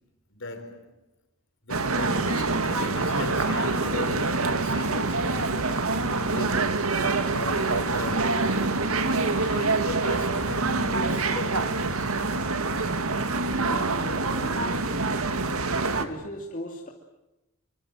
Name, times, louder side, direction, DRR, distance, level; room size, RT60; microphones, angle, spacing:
voice 1, 0.3-0.9 1.6-6.9 7.3-12.1, left 2 dB, 60° left, 4.7 m, -37 dB
sound 1, 1.7-16.0, right 3 dB, 85° right, 2.0 m, -26 dB
voice 2, 13.5-15.1 15.8-16.9, left 1 dB, 40° left, 2.9 m, -39 dB
26.5 x 25.0 x 7.8 m
head